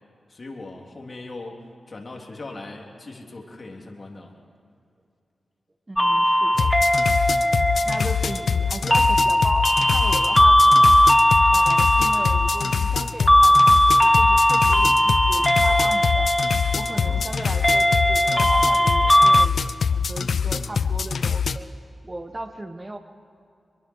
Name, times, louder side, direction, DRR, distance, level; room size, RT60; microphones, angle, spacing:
voice 1, 0.3-4.4 16.9-17.3, left 2 dB, 45° left, 1 dB, 3.5 m, -39 dB
voice 2, 5.9-6.7 7.8-11.0 11.5-16.3 16.7-19.6 19.9-21.7 22.0-23.0, right 2 dB, 30° right, 7 dB, 1.3 m, -36 dB
sound 1, 6.0-19.5, equal, 10° left, 0.5 m, -18 dB
sound 2, 6.5-21.6, left 6 dB, 75° left, 0.6 m, -25 dB
24.5 x 22.5 x 4.8 m, 2.5 s
cardioid pair, 60°, 0 cm